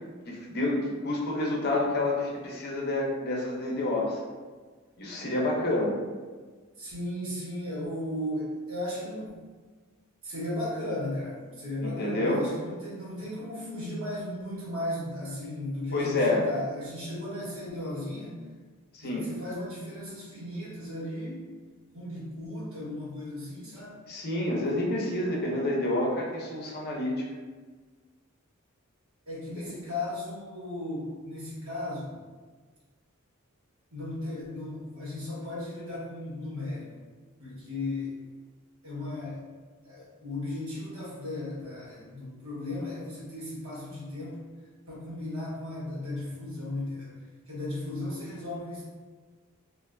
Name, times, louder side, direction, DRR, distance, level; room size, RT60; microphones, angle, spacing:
voice 1, 0.3-4.2 5.0-6.0 11.8-12.4 15.9-16.4 18.9-19.3 24.1-27.1, left 2 dB, 50° left, -2 dB, 0.6 m, -28 dB
voice 2, 6.8-9.3 10.2-18.5 19.0-21.5 21.9-24.0 29.3-32.2 33.9-36.9 37.4-38.2 38.8-39.4 39.8-44.4 44.9-48.8, left 1 dB, 75° right, -7 dB, 1.3 m, -36 dB
3.2 x 2.5 x 2.5 m, 1.4 s
head